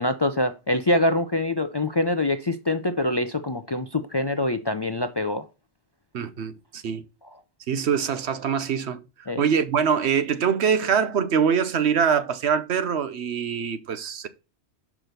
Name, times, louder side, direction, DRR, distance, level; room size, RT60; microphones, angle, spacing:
voice 1, 0.0-5.4 9.3-9.4, left 2 dB, 35° left, 0.4 m, -24 dB
voice 2, 6.1-7.0 7.7-14.3, right 7 dB, 80° right, 1.1 m, -24 dB
5.9 x 4.8 x 6.6 m
omnidirectional pair, 1.1 m